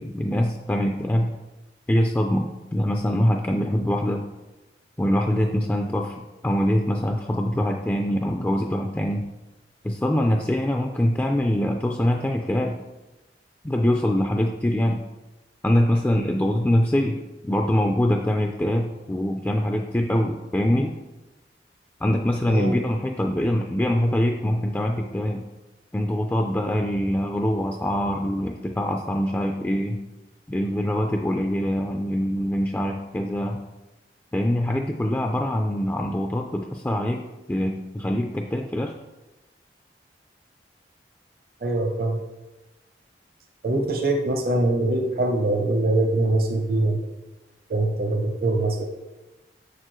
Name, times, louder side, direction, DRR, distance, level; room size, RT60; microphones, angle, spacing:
voice 1, 0.0-1.3 1.9-4.3 5.0-9.3 9.8-12.8 13.6-15.0 15.6-21.0 22.0-25.5 25.9-30.0 30.5-33.6 34.3-38.9, left 1 dB, 10° left, 2 dB, 0.3 m, -24 dB
voice 2, 41.6-42.2 43.6-47.0 47.7-48.8, right 2 dB, 55° right, 2 dB, 0.8 m, -23 dB
6.8 x 6.6 x 3.1 m, 1.1 s
head